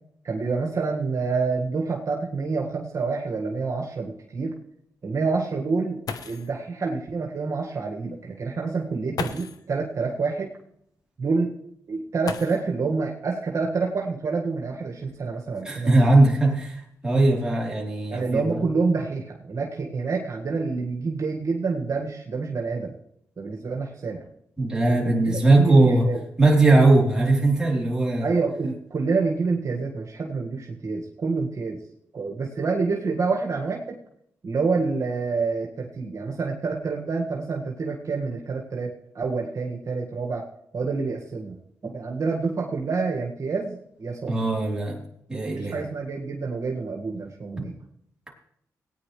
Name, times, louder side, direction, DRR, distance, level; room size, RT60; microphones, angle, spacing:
voice 1, 0.2-4.6 5.0-10.5 11.2-11.6 11.9-15.9 18.1-22.9 23.4-24.2 24.9-26.2 28.2-31.8 32.1-34.0 34.4-40.5 40.7-41.6 41.8-44.3 45.5-47.8, right 4 dB, 55° right, 0 dB, 1.9 m, -27 dB
sound 1, 2.2-2.3 2.6-2.7 3.4-3.5 5.7-5.8 6.1-6.6 7.9-8.0 9.1-9.7 12.2-13.0 14.3-14.4 15.2-16.6 17.3-17.7 18.0-18.4, left 5 dB, 70° left, 0.9 m, -37 dB
voice 2, 15.6-18.6 24.6-26.1 26.4-28.3 44.3-45.0 45.3-45.7, right 2 dB, 10° right, -3 dB, 3.6 m, -20 dB
18.0 x 9.6 x 3.3 m, 0.71 s
cardioid pair, 75°, 7 cm